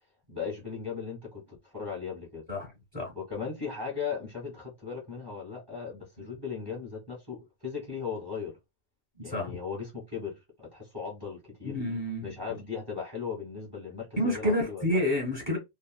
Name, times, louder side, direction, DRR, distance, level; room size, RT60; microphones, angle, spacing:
voice 1, 0.3-2.4 3.1-8.6 9.2-11.8 12.2-15.0, left 6 dB, 20° right, 1.4 m, -37 dB
voice 2, 9.2-9.5 11.6-12.3 14.2-15.6, left 1 dB, 30° left, 1.2 m, -29 dB
3.0 x 2.7 x 2.2 m
omnidirectional pair, 1.3 m